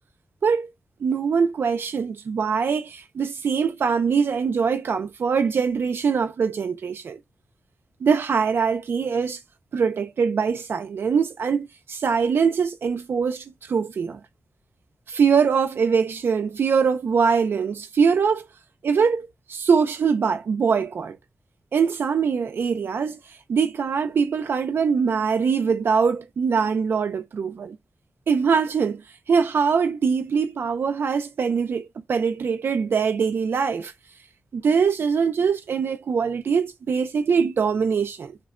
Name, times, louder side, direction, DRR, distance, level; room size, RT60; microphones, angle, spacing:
voice 1, 1.0-7.2 8.0-9.4 9.7-14.2 15.1-18.5 18.8-21.2 21.7-23.2 23.5-27.8 28.3-33.9 34.5-38.4, right 6 dB, 70° right, 0.4 m, -23 dB
3.5 x 2.1 x 2.4 m
wide cardioid pair, 120°, 4 cm